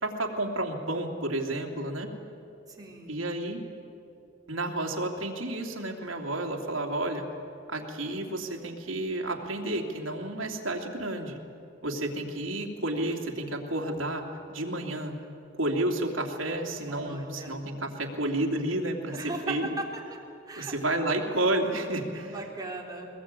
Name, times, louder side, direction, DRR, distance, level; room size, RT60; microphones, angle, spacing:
voice 1, 0.0-2.1 3.1-3.6 4.5-7.3 7.7-11.4 11.8-15.1 15.5-19.7 20.6-22.3, right 1 dB, 80° right, 1 dB, 2.9 m, -31 dB
voice 2, 2.7-3.1 16.9-17.6 19.1-19.8 20.5-20.7 22.2-23.1, right 2 dB, 20° right, -1 dB, 3.5 m, -38 dB
22.0 x 21.0 x 9.0 m, 2.8 s
head